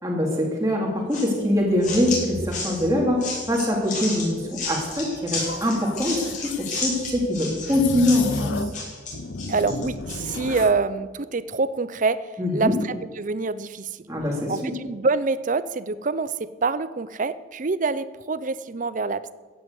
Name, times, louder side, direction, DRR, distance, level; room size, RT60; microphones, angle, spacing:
voice 1, 0.0-8.7 12.4-12.7 14.1-14.7, left 1 dB, 15° right, -2 dB, 2.6 m, -23 dB
sound 1, 1.1-10.3, left 3 dB, 40° left, 5.8 m, -32 dB
sound 2, 5.3-6.8 7.7-8.8 9.1-10.8, left 3 dB, 65° left, 0.8 m, -33 dB
voice 2, 9.5-14.1 14.5-19.3, right 4 dB, 40° right, 16 dB, 0.6 m, -26 dB
15.0 x 9.3 x 8.0 m, 1.4 s
head